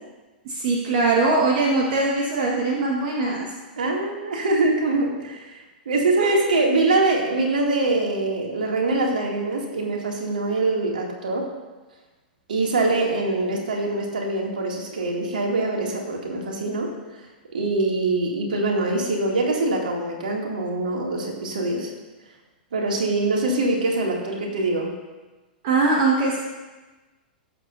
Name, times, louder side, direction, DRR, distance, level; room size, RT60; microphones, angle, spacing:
voice 1, 0.4-3.5 6.2-6.5 25.6-26.4, right 3 dB, 45° right, -2 dB, 1.7 m, -21 dB
voice 2, 3.8-5.6 5.9-11.5 12.5-16.9 17.5-21.9 22.7-24.9, right 2 dB, 65° right, -1 dB, 2.7 m, -23 dB
19.5 x 8.1 x 2.8 m, 1.2 s
figure-of-eight pair, 100°, 5 cm